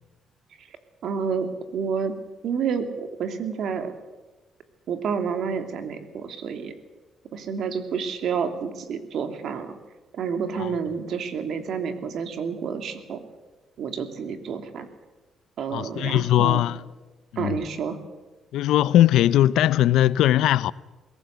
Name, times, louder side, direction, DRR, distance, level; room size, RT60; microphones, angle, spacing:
voice 1, 1.0-2.1 2.4-3.9 4.9-6.7 7.3-9.8 10.1-13.2 13.8-14.9 15.6-16.6 17.4-18.0, right 6 dB, 70° right, 2.8 m, -29 dB
voice 2, 15.7-16.8 17.4-17.6 18.5-20.7, left 13 dB, 85° left, 0.6 m, -19 dB
22.0 x 18.0 x 8.1 m
cardioid pair, 90°, 0 cm